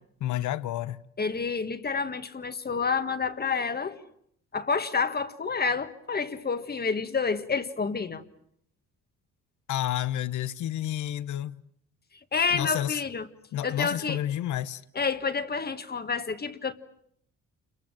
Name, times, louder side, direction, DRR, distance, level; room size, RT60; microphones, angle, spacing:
voice 1, 0.2-1.0 9.7-11.6 12.5-13.0 13.5-14.8, left 12 dB, 80° left, 1.0 m, -30 dB
voice 2, 1.2-4.0 4.5-8.2 12.3-13.3 13.6-14.2 14.9-16.7, left 5 dB, 30° left, 1.7 m, -29 dB
28.0 x 23.0 x 7.6 m
cardioid pair, 90°, 30 cm